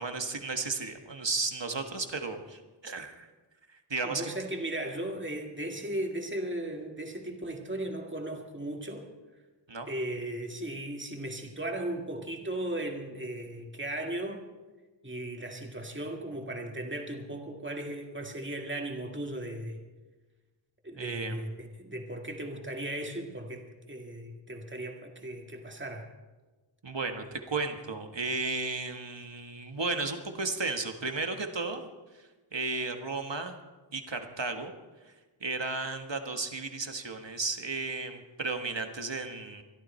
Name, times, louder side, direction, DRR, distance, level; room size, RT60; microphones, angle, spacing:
voice 1, 0.0-3.3 3.9-4.3 9.7-9.9 21.0-21.4 26.8-31.9 32.5-33.6 33.9-34.7 35.4-39.6, right 3 dB, 65° right, 6 dB, 1.5 m, -34 dB
voice 2, 4.0-9.1 9.9-14.4 15.0-19.8 20.8-26.1, right 1 dB, 25° right, 2 dB, 1.9 m, -36 dB
22.5 x 12.0 x 4.4 m, 1.2 s
wide cardioid pair, 45°, 47 cm